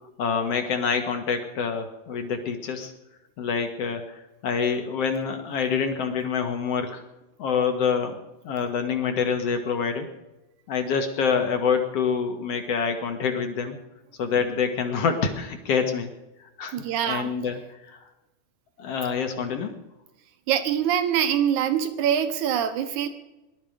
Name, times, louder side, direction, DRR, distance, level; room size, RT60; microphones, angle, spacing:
voice 1, 0.2-2.9 3.4-4.2 4.4-7.0 7.4-8.2 8.4-10.1 10.7-13.8 14.2-16.1 16.6-17.6 17.9-18.0 18.8-19.8, left 6 dB, 55° left, 5 dB, 1.8 m, -26 dB
voice 2, 16.7-17.3 20.5-23.1, right 9 dB, 65° right, 8 dB, 2.1 m, -24 dB
21.5 x 12.5 x 5.2 m, 0.98 s
omnidirectional pair, 4.7 m